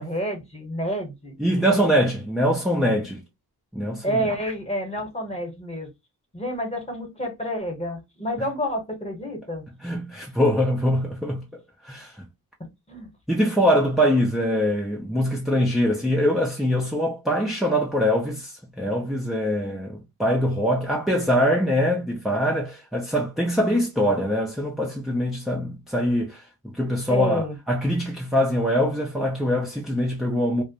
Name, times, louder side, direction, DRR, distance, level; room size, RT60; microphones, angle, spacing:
voice 1, 0.0-1.3 4.0-5.9 6.3-9.6 12.6-13.1 27.1-27.5, equal, 15° left, 0.9 m, -29 dB
voice 2, 1.4-3.2 3.7-4.3 9.8-12.2 13.3-30.6, equal, ahead, 0.3 m, -23 dB
2.4 x 2.0 x 2.7 m
wide cardioid pair, 115°, 38 cm